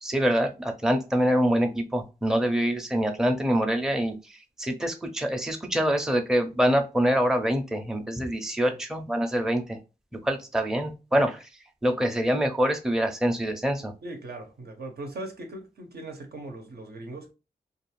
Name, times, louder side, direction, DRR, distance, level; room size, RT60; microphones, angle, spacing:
voice 1, 0.0-9.8 10.2-11.5 11.8-13.9, equal, 5° right, 0.5 m, -25 dB
voice 2, 14.0-17.3, right 2 dB, 70° right, 0.7 m, -39 dB
2.5 x 2.3 x 3.0 m
cardioid pair, 70°, 17 cm